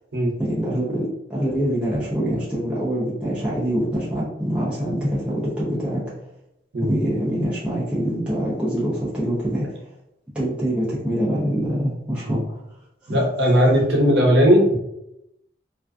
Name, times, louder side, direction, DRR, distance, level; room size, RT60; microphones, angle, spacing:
voice 1, 0.4-6.0 6.8-9.8 10.3-12.6 13.1-13.2, equal, 5° right, -9 dB, 0.5 m, -24 dB
voice 2, 13.1-14.8, equal, 70° right, 0 dB, 0.6 m, -17 dB
2.5 x 2.3 x 2.2 m, 0.84 s
head